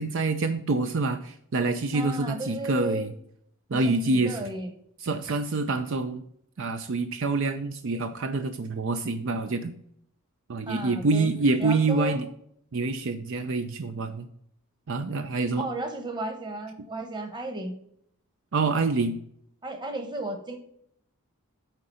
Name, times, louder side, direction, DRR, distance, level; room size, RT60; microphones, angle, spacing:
voice 1, 0.0-3.1 3.7-4.4 5.0-6.2 6.6-9.7 10.5-12.3 12.7-14.3 14.9-15.7 18.5-19.2, right 3 dB, 60° right, 8 dB, 0.5 m, -26 dB
voice 2, 1.9-3.1 3.7-4.7 10.7-11.3 11.6-12.2 15.6-17.7 19.6-20.6, right 2 dB, 20° right, 5 dB, 1.1 m, -34 dB
9.0 x 3.8 x 5.5 m, 0.69 s
head